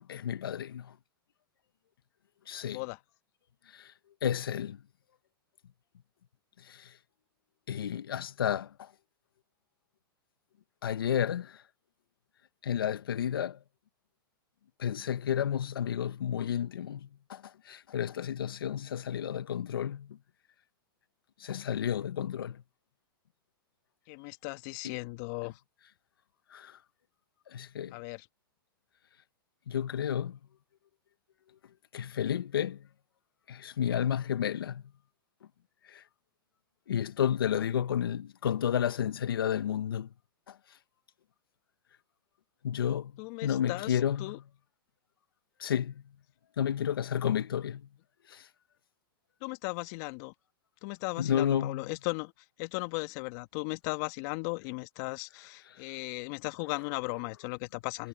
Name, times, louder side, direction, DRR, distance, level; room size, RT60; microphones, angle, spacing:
voice 1, 0.1-0.9 2.5-2.8 3.7-3.9 4.2-4.8 6.6-6.9 7.7-8.9 10.8-11.6 12.6-13.6 14.8-20.1 21.4-22.6 24.8-24.9 26.5-26.8 27.5-27.9 29.7-30.4 31.9-32.8 33.5-34.8 35.9-36.0 36.9-40.1 40.5-40.6 42.6-43.1 43.4-44.3 45.6-45.9 46.6-47.8 48.3-48.5 51.2-51.8, left 9 dB, 80° left, 1.3 m, -31 dB
voice 2, 2.6-3.0 24.1-25.6 27.9-28.3 37.5-37.7 43.2-44.4 49.4-50.3 50.8-52.3 52.6-58.1, left 27 dB, 50° left, 1.7 m, -37 dB
hypercardioid pair, 110°, 12 cm